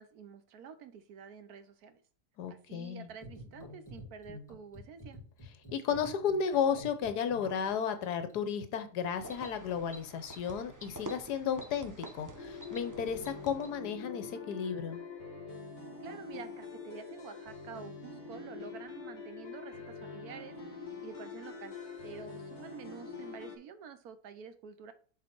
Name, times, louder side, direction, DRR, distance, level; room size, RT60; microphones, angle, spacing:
voice 1, 0.0-2.0 2.5-5.2 16.0-20.6 21.0-21.8 22.0-24.9, right 7 dB, 70° right, 11 dB, 1.1 m, -49 dB
voice 2, 2.4-3.1 5.7-15.0, left 7 dB, 70° left, 10 dB, 1.3 m, -33 dB
sound 1, 3.1-10.7, left 1 dB, 10° left, 2.6 m, -50 dB
sound 2, 9.0-13.9, right 1 dB, 15° right, 0.8 m, -48 dB
sound 3, 12.3-23.6, left 4 dB, 40° left, 1.7 m, -45 dB
7.3 x 3.9 x 4.4 m, 0.42 s
omnidirectional pair, 1.8 m